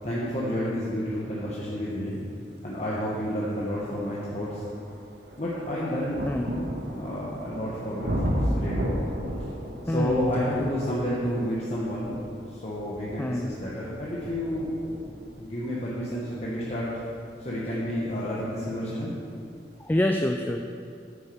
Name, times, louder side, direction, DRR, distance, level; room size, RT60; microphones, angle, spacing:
voice 1, 0.0-2.2 2.6-4.6 5.4-6.2 6.9-8.9 9.8-12.2 12.5-14.7 15.3-16.9 17.4-19.1, equal, 40° left, -7 dB, 1.4 m, -30 dB
sound 1, 3.2-3.3 3.9-18.6 19.5-19.6, equal, 75° right, 1.6 m, -35 dB
voice 2, 9.8-10.7 13.2-13.6 19.8-20.6, left 1 dB, 10° left, 3 dB, 0.4 m, -27 dB
9.2 x 6.7 x 7.1 m, 2.4 s
head